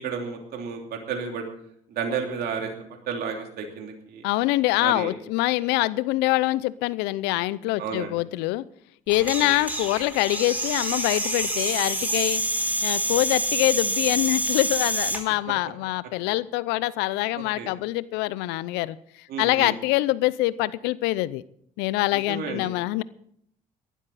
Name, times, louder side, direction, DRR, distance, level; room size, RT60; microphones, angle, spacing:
voice 1, 0.0-1.5 1.9-4.2 4.8-5.1 7.8-8.1 9.4-9.5 17.3-17.7 19.3-19.7 22.3-22.7, right 6 dB, 70° right, 2 dB, 2.8 m, -32 dB
voice 2, 4.2-8.6 9.1-12.4 12.8-21.4 21.8-23.0, left 18 dB, 80° left, 19 dB, 0.6 m, -25 dB
sound 1, 9.1-15.2, right 1 dB, 10° right, 4.6 m, -27 dB
18.5 x 12.0 x 4.1 m, 0.67 s
hypercardioid pair, 60°, 17 cm